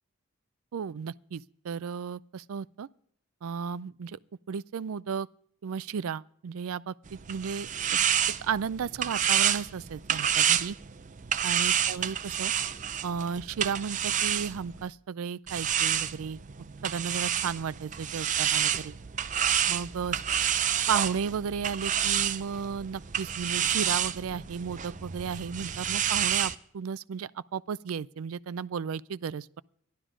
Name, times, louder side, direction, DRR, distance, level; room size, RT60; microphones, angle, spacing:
voice 1, 0.7-2.9 3.4-4.2 4.5-5.3 5.6-8.0 8.4-10.8 11.4-12.5 13.0-16.4 16.8-19.0 19.7-20.2 20.9-29.6, right 6 dB, 90° right, 0.4 m, -34 dB
sound 1, 7.1-14.9 15.5-26.6, right 9 dB, 35° right, 0.5 m, -29 dB
13.0 x 11.5 x 5.0 m
head